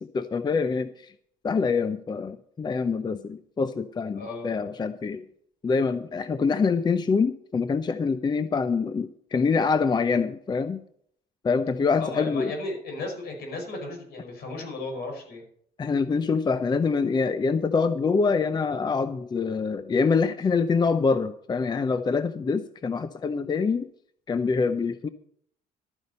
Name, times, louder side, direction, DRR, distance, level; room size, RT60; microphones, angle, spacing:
voice 1, 0.0-1.1 1.4-5.3 5.6-10.8 11.4-12.5 15.8-23.9 24.3-25.1, left 5 dB, 25° left, 12 dB, 0.6 m, -25 dB
voice 2, 4.2-4.7 12.0-15.4, left 2 dB, 70° left, 3 dB, 5.4 m, -35 dB
12.5 x 9.4 x 5.5 m, 0.66 s
cardioid pair, 110°, 17 cm